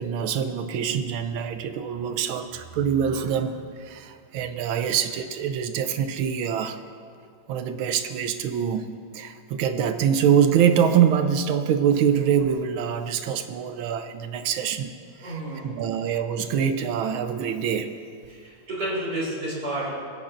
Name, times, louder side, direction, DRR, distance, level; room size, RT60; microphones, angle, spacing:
voice 1, 0.0-6.8 7.5-8.9 9.1-17.9, right 8 dB, 80° right, 9 dB, 1.5 m, -24 dB
voice 2, 15.2-15.7 18.3-19.9, right 1 dB, 55° right, -7 dB, 4.1 m, -30 dB
20.0 x 10.0 x 2.5 m, 2.2 s
omnidirectional pair, 2.2 m